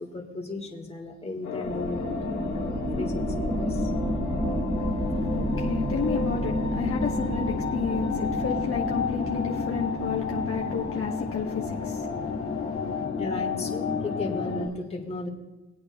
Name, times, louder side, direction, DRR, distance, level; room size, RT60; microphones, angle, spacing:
voice 1, 0.0-3.9 13.2-15.3, left 2 dB, 20° left, 1.7 m, -35 dB
sound 1, 1.4-14.7, left 5 dB, 70° left, 1.8 m, -32 dB
sound 2, 1.6-13.9, equal, 10° right, 1.7 m, -31 dB
voice 2, 4.8-13.1, left 6 dB, 45° left, 1.1 m, -32 dB
21.0 x 8.6 x 2.3 m
cardioid pair, 90°, 30 cm